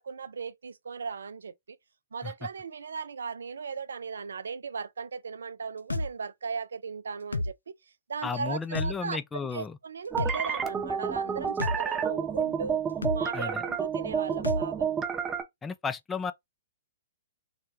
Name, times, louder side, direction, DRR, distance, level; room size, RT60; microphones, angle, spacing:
voice 1, 0.0-1.5 2.1-7.7 8.1-12.8 13.1-14.9, right 5 dB, 70° right, 0.4 m, -37 dB
sound 1, 5.9-6.1 7.3-7.5 8.8-8.9 10.2-10.4 11.6-11.8 13.0-13.2 14.4-14.6, left 2 dB, 80° left, 0.4 m, -29 dB
voice 2, 8.2-9.8 13.3-13.6 15.6-16.3, left 5 dB, 10° left, 0.3 m, -33 dB
sound 2, 10.1-15.4, right 7 dB, 15° right, 0.7 m, -30 dB
3.3 x 2.2 x 3.1 m
figure-of-eight pair, 120°, 0 cm